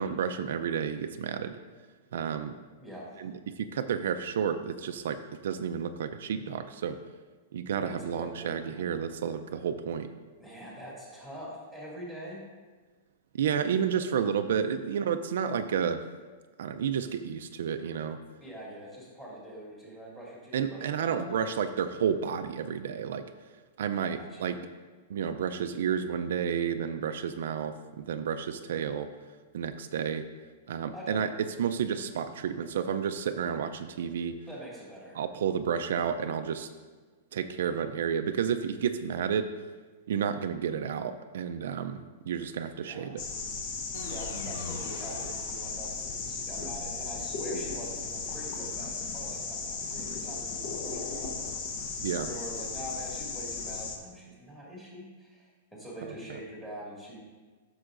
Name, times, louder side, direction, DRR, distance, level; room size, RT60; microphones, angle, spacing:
voice 1, 0.0-1.6 2.1-2.5 3.2-7.0 7.5-10.1 13.4-16.0 16.6-18.2 20.5-23.2 23.8-24.5 25.1-29.1 29.5-30.3 30.7-34.3 35.1-36.7 37.3-39.5 40.1-43.2 52.0-52.3 56.0-56.4, right 7 dB, 70° right, 8 dB, 0.4 m, -31 dB
voice 2, 2.8-3.2 7.8-8.9 10.4-12.4 18.4-21.6 24.0-24.5 30.9-31.3 34.5-35.2 42.8-43.2 44.1-51.6 52.1-57.2, equal, 5° left, -6 dB, 2.2 m, -44 dB
sound 1, 43.2-54.0, left 4 dB, 40° left, 1.0 m, -36 dB
sound 2, 43.9-46.3, left 3 dB, 90° left, 1.3 m, -43 dB
12.5 x 6.3 x 2.5 m, 1.4 s
supercardioid pair, 170°, 0 cm